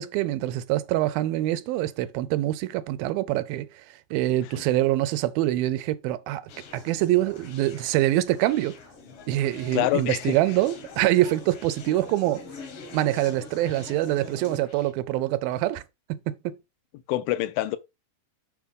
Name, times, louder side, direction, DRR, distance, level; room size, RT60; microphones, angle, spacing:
voice 1, 0.0-6.4 6.7-8.8 9.3-12.4 12.9-15.8 16.1-16.6, right 15 dB, 80° right, 2.4 m, -25 dB
Conversation, 6.5-14.9, left 4 dB, 60° left, 1.5 m, -45 dB
voice 2, 9.7-10.4 17.1-17.8, left 15 dB, 80° left, 2.3 m, -25 dB
7.0 x 4.8 x 5.2 m
omnidirectional pair, 4.3 m